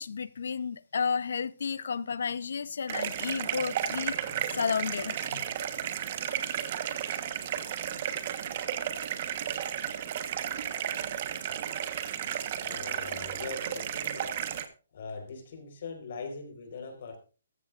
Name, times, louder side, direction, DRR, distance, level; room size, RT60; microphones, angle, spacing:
voice 1, 0.0-5.4, left 6 dB, 70° left, 0.7 m, -32 dB
sound 1, 2.9-14.6, right 9 dB, 40° right, 1.2 m, -33 dB
voice 2, 12.6-14.4 14.9-17.2, left 4 dB, 50° left, 4.3 m, -41 dB
14.5 x 14.0 x 2.5 m
hypercardioid pair, 160°, 0 cm